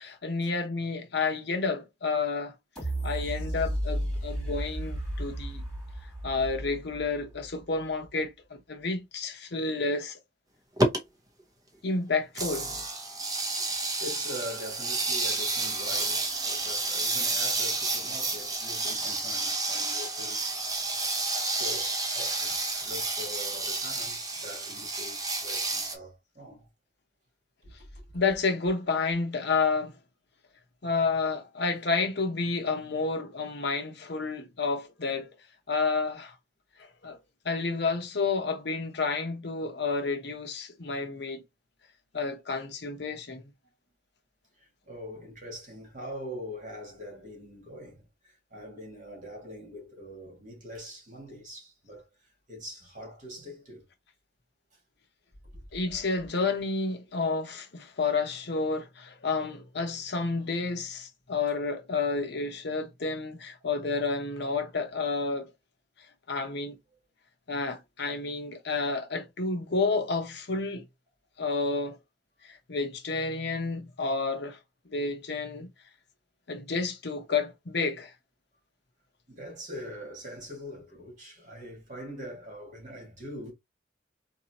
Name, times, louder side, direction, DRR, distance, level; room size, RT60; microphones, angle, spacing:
voice 1, 0.0-2.5 3.0-5.6 6.2-10.2 11.8-12.7 28.1-30.0 30.8-35.4 35.7-36.4 36.8-37.2 37.4-41.4 42.1-43.5 55.7-65.5 66.3-66.8 67.5-70.8 71.4-72.0 72.4-74.6 74.9-75.7 76.5-78.1, left 4 dB, 65° left, 0.9 m, -30 dB
sound 1, 2.8-7.6 8.1-8.2, right 1 dB, ahead, 2.9 m, -33 dB
sound 2, 10.8-11.0 12.3-26.0, right 3 dB, 20° right, 0.8 m, -30 dB
voice 2, 13.1-20.8 21.4-26.7 27.6-28.0 44.6-53.9 55.5-56.0 79.3-83.5, equal, 45° right, 2.0 m, -43 dB
3.9 x 2.9 x 2.9 m
head